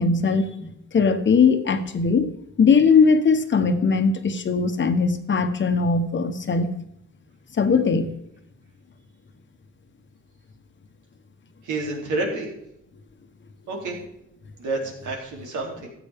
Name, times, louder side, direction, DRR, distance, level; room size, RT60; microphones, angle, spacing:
voice 1, 0.0-2.3 2.6-6.7 7.6-8.1, left 5 dB, 40° left, 8 dB, 1.2 m, -20 dB
voice 2, 11.6-12.5 13.7-14.0 14.6-15.9, right 2 dB, 80° right, 0 dB, 3.2 m, -29 dB
13.5 x 8.1 x 3.6 m, 0.79 s
cardioid pair, 90°, 30 cm